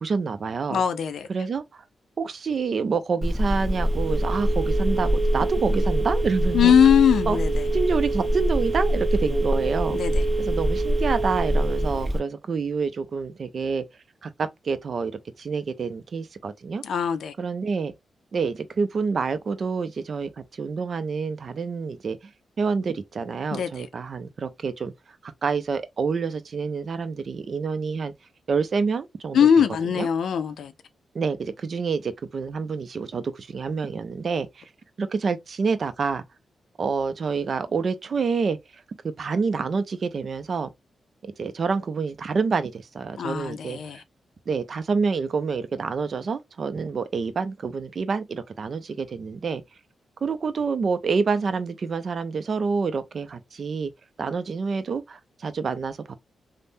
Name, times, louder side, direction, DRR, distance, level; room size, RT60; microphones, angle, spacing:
voice 1, 0.0-0.8 1.3-1.8 2.2-6.7 7.3-7.4 7.7-10.0 10.4-13.8 14.2-15.1 15.4-16.8 17.4-17.9 18.3-22.2 22.6-24.9 25.2-28.1 28.5-29.5 30.0-30.1 31.1-34.6 35.0-36.2 36.8-40.7 41.2-44.0 44.5-49.6 50.2-53.9 54.2-56.2, right 5 dB, 55° right, 0.5 m, -27 dB
voice 2, 0.7-1.3 6.5-7.7 9.9-10.2 16.8-17.3 23.5-23.9 29.3-30.7 43.1-44.0, left 8 dB, 80° left, 0.4 m, -21 dB
Telephone, 3.2-12.2, right 1 dB, 15° right, 0.9 m, -24 dB
3.3 x 2.1 x 2.6 m
cardioid pair, 90°, 0 cm